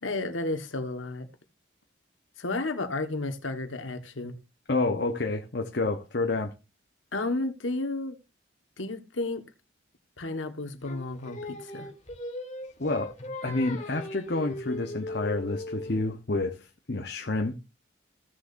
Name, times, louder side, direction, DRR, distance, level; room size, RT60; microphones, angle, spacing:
voice 1, 0.0-1.3 2.4-4.4 7.1-8.2 8.8-9.4 10.2-11.9, left 2 dB, 90° left, 1.5 m, -32 dB
voice 2, 4.7-6.5 12.8-13.1 13.4-17.6, left 2 dB, 55° left, 1.0 m, -29 dB
Singing, 10.8-16.0, left 2 dB, 40° left, 1.8 m, -38 dB
16.0 x 6.7 x 2.6 m
head